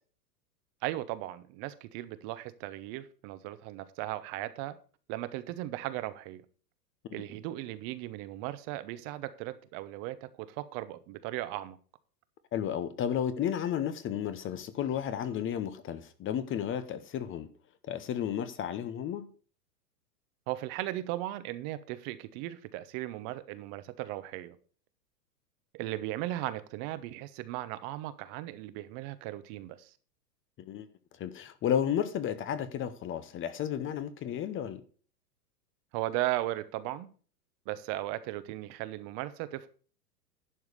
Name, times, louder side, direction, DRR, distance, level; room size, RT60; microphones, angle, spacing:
voice 1, 0.8-4.8 5.1-6.4 7.1-11.8 20.5-24.6 25.7-29.9 35.9-37.1 37.7-39.7, right 15 dB, 45° right, 0.9 m, -37 dB
voice 2, 12.5-17.5 17.9-19.3 30.6-30.9 31.2-34.8, left 9 dB, 25° left, 0.8 m, -33 dB
11.0 x 4.7 x 6.7 m
hypercardioid pair, 115°, 48 cm